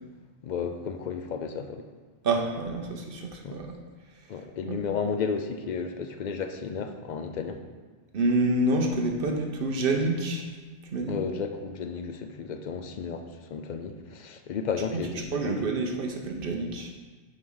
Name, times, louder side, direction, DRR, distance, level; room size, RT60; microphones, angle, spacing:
voice 1, 0.4-1.9 3.4-3.6 4.3-7.6 11.1-15.7, left 5 dB, 55° left, 6 dB, 0.5 m, -33 dB
voice 2, 2.2-3.7 4.1-4.3 4.7-4.8 8.1-10.5 10.8-11.2 14.9-15.0 15.3-16.9, right 2 dB, 60° right, 2 dB, 0.8 m, -27 dB
5.0 x 4.6 x 5.4 m, 1.3 s
omnidirectional pair, 1.1 m